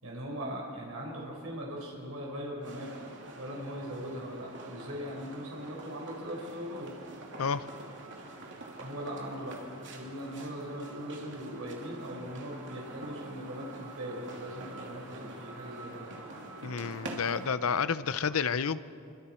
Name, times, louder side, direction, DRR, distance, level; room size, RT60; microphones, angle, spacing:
voice 1, 0.0-2.9 3.4-6.9 8.8-9.6 9.9-16.1, equal, 80° right, -2 dB, 4.9 m, -40 dB
sound 1, 2.6-17.5, right 2 dB, 60° right, 2.8 m, -46 dB
voice 2, 16.6-18.8, left 6 dB, 80° left, 14 dB, 0.7 m, -30 dB
27.5 x 24.0 x 4.5 m, 2.5 s
head